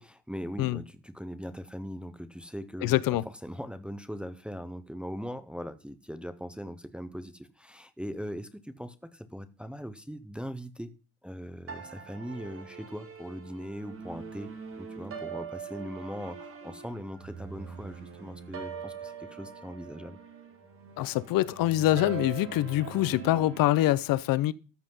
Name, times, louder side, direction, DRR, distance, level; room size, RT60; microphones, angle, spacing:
voice 1, 0.0-10.9 11.2-20.2, equal, 5° right, 0.5 m, -40 dB
voice 2, 2.8-3.2 21.0-24.5, left 15 dB, 70° left, 0.6 m, -25 dB
sound 1, 11.7-23.9, right 6 dB, 35° right, 1.9 m, -43 dB
13.5 x 5.6 x 5.4 m
cardioid pair, 175°, 36 cm